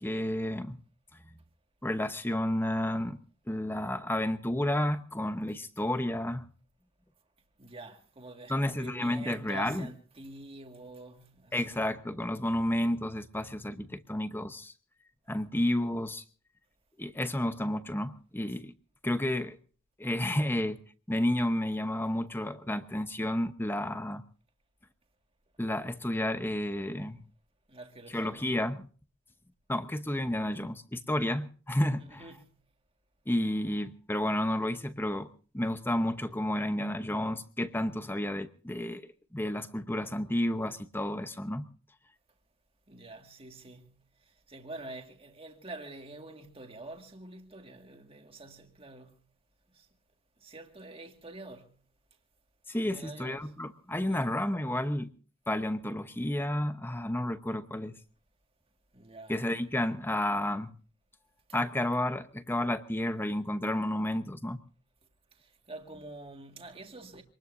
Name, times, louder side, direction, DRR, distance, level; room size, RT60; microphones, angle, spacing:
voice 1, 0.0-0.8 1.8-3.2 3.5-6.5 8.5-9.9 11.5-14.7 15.3-16.2 17.0-18.7 19.0-19.6 20.0-20.8 21.1-24.2 25.6-27.2 28.1-28.8 29.7-32.2 33.3-41.7 52.7-55.1 55.5-57.9 59.3-60.7 61.5-64.6, left 1 dB, 10° left, 0.9 m, -31 dB
voice 2, 7.6-12.0 27.7-28.4 32.1-32.5 42.9-49.2 49.7-49.9 50.4-51.8 52.8-53.6 54.0-54.4 58.9-59.4 63.1-63.3 65.4-67.2, right 2 dB, 25° right, 1.9 m, -47 dB
25.5 x 20.0 x 2.6 m
head